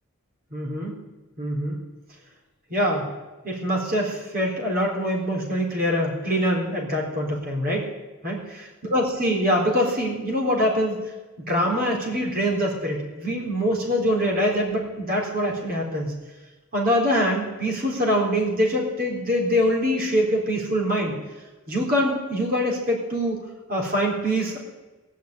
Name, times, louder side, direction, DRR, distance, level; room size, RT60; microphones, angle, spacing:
voice 1, 0.5-1.0 1.4-1.8 2.7-3.1 3.4-7.9 8.2-8.4 8.9-11.0 11.5-16.1 16.7-21.1 21.7-23.4 23.7-24.6, equal, 40° right, -2 dB, 3.8 m, -24 dB
20.0 x 6.6 x 9.4 m, 1.2 s
head